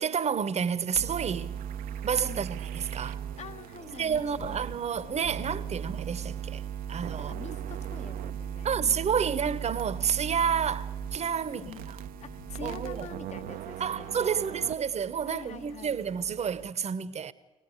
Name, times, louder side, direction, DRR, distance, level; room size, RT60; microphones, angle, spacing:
voice 1, 0.0-1.6 2.0-3.2 3.9-6.6 6.9-7.3 8.6-11.7 12.6-13.1 13.8-17.3, right 7 dB, 40° right, 1.1 m, -30 dB
sound 1, 0.9-16.7, right 8 dB, 55° right, 0.8 m, -38 dB
voice 2, 3.4-4.6 7.2-9.5 11.5-11.9 12.2-14.6 15.2-16.0, left 6 dB, 40° left, 1.5 m, -46 dB
sound 2, 4.0-13.6, left 8 dB, 60° left, 6.9 m, -51 dB
24.5 x 18.5 x 8.3 m
figure-of-eight pair, 50°, 18 cm